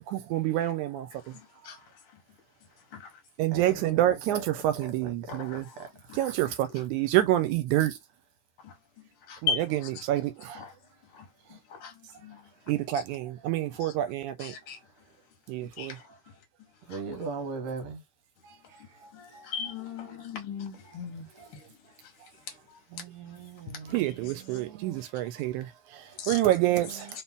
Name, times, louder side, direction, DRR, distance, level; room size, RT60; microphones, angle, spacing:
voice 1, 0.1-1.3 3.4-5.7 6.1-8.0 9.4-10.6 12.7-14.6 15.5-16.0 23.9-27.1, right 14 dB, 85° right, 2.0 m, -28 dB
voice 2, 5.3-5.8 6.1-6.3 8.6-8.7 9.3-9.6 10.5-10.7 11.1-11.2 11.5-11.9 12.2-12.4 13.8-13.9 14.4-14.8 15.8-16.0 16.9-17.0 19.1-21.3 23.9-24.0 26.2-26.4, left 6 dB, 55° left, 1.8 m, -37 dB
voice 3, 16.9-18.0 22.9-24.1 24.5-25.0, right 4 dB, 65° right, 2.1 m, -38 dB
4.4 x 2.8 x 3.5 m
omnidirectional pair, 3.4 m